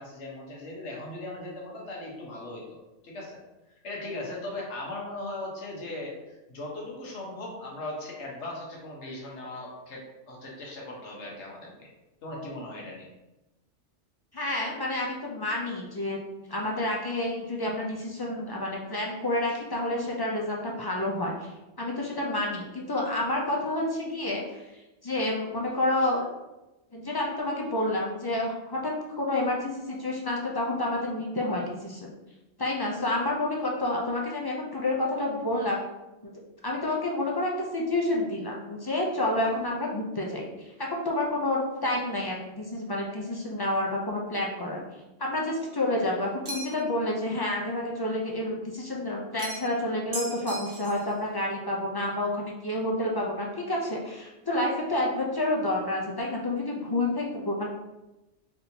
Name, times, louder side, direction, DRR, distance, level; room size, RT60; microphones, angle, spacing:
voice 1, 0.0-2.6 3.0-3.4 3.8-11.9 12.2-13.1, left 2 dB, 75° left, -2 dB, 1.3 m, -38 dB
voice 2, 14.3-16.2 16.5-21.5 21.8-24.6 25.0-26.2 26.9-32.1 32.6-35.8 36.2-36.3 36.6-40.5 40.8-44.8 45.2-57.7, left 1 dB, 35° left, -2 dB, 0.3 m, -29 dB
sound 1, 46.4-46.9 49.4-49.8 50.1-51.1, right 1 dB, 35° right, 0.8 m, -37 dB
4.1 x 3.4 x 2.8 m, 1.0 s
omnidirectional pair, 1.2 m